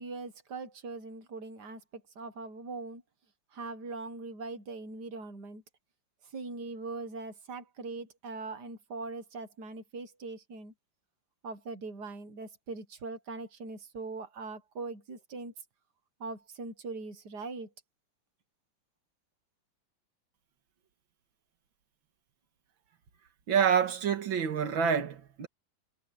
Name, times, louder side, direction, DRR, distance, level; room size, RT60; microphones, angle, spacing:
voice 1, 0.0-3.0 3.5-5.6 6.2-10.7 11.4-15.5 16.2-17.7, right 3 dB, 60° right, 2.1 m, -41 dB
voice 2, 23.5-25.5, right 7 dB, 80° right, 2.4 m, -27 dB
omnidirectional pair, 2.1 m